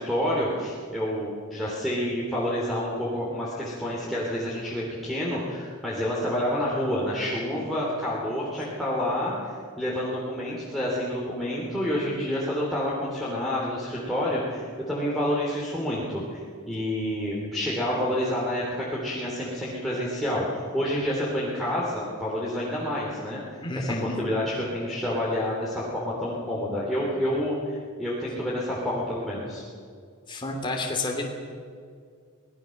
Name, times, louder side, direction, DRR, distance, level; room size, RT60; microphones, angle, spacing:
voice 1, 0.0-16.4 16.7-23.4 23.7-29.6, equal, ahead, -7 dB, 3.3 m, -28 dB
voice 2, 23.6-24.2 30.3-31.2, left 2 dB, 20° left, 1 dB, 2.7 m, -30 dB
25.0 x 18.5 x 6.5 m, 2.2 s
head